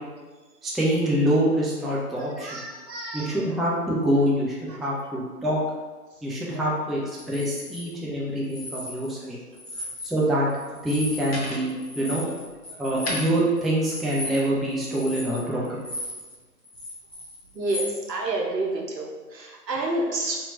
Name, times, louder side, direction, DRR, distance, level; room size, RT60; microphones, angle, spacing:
voice 1, 0.6-2.6 3.1-5.6 6.2-9.4 10.0-10.5 10.8-15.8, right 1 dB, ahead, -5 dB, 0.3 m, -25 dB
voice 2, 2.4-3.4 4.7-4.8 6.5-6.6 9.8-9.9 17.5-20.4, right 2 dB, 90° right, -1 dB, 0.9 m, -29 dB
sound 1, 7.2-7.8 8.4-9.2 9.5-10.2 10.5-16.3 16.6-17.9, left 1 dB, 40° left, 0.6 m, -36 dB
3.0 x 2.8 x 2.6 m, 1.3 s
figure-of-eight pair, 170°, 48 cm